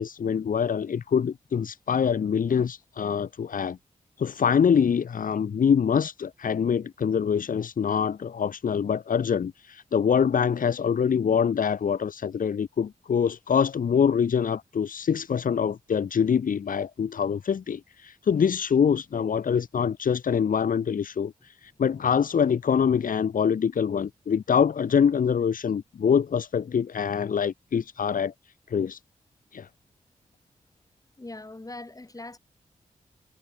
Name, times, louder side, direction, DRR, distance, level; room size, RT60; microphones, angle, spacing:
voice 1, 0.0-3.8 4.2-28.3 28.7-29.0 29.5-29.7, left 7 dB, 75° left, 1.3 m, -25 dB
voice 2, 31.2-32.4, left 2 dB, 25° left, 6.8 m, -41 dB
cardioid pair, 60°, 14 cm